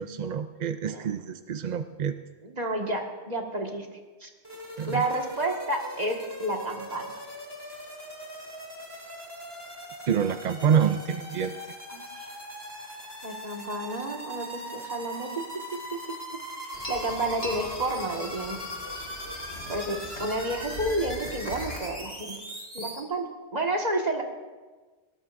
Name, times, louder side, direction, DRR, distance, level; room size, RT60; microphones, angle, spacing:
voice 1, 0.0-2.2 4.8-5.0 10.1-11.6, right 7 dB, 55° right, 9 dB, 0.5 m, -27 dB
voice 2, 2.4-3.9 4.2-4.3 4.9-7.2 11.9-12.3 13.2-15.4 15.7-16.2 16.9-18.6 19.7-22.4 22.7-24.2, right 1 dB, 35° right, 1 dB, 1.9 m, -30 dB
sound 1, 4.4-23.0, equal, 20° right, 3.0 m, -40 dB
sound 2, 16.7-21.9, left 2 dB, 70° left, 2.2 m, -40 dB
22.0 x 19.0 x 2.6 m, 1.3 s
omnidirectional pair, 1.2 m